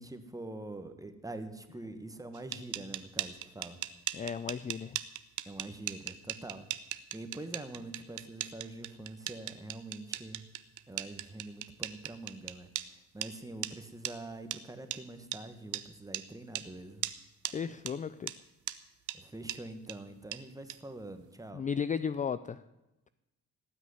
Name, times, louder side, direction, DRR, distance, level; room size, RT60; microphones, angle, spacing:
voice 1, 0.0-3.8 5.4-6.7 7.1-10.5 10.9-12.7 13.1-17.0 19.1-21.6, right 2 dB, 10° right, 8 dB, 1.6 m, -45 dB
sound 1, 2.3-12.9 13.2-13.3 13.6-13.7 14.0-14.1 14.5-14.6 14.9-15.0 15.3-15.4 15.7-15.8 16.1-16.2 16.5-16.7 17.0-17.2 17.4-17.5 17.9-18.0 18.3-18.4 18.7-18.8 19.1-19.2 19.5-19.6 19.9-20.0 20.3-20.4 20.7-20.8, right 14 dB, 80° right, 0.9 m, -37 dB
voice 2, 4.1-5.0 17.5-18.3 21.5-22.6, left 6 dB, 25° left, 15 dB, 0.4 m, -34 dB
18.0 x 6.3 x 9.7 m, 1.0 s
cardioid pair, 90°, 30 cm